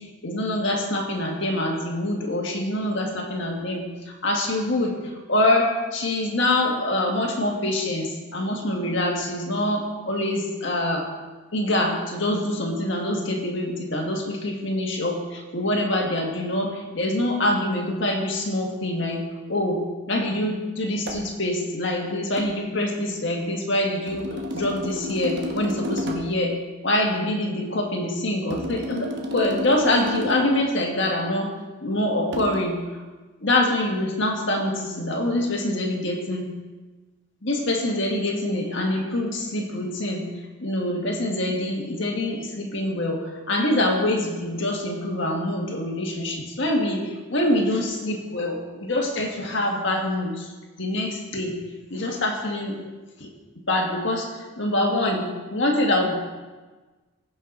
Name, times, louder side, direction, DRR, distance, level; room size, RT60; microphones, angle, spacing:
voice 1, 0.2-11.1 11.5-19.2 19.5-19.8 20.1-24.2 24.5-26.5 26.8-31.5 31.8-33.0 33.4-36.5 37.4-40.2 40.6-50.5 50.8-51.5 51.9-52.8 53.2-53.3 53.7-56.1, left 1 dB, 55° left, 0 dB, 1.7 m, -25 dB
sound 1, 21.1-21.3 22.4-22.6 24.1-26.4 28.5-30.6 32.3-32.6, left 1 dB, 50° right, 1.1 m, -32 dB
15.5 x 5.7 x 3.9 m, 1.3 s
head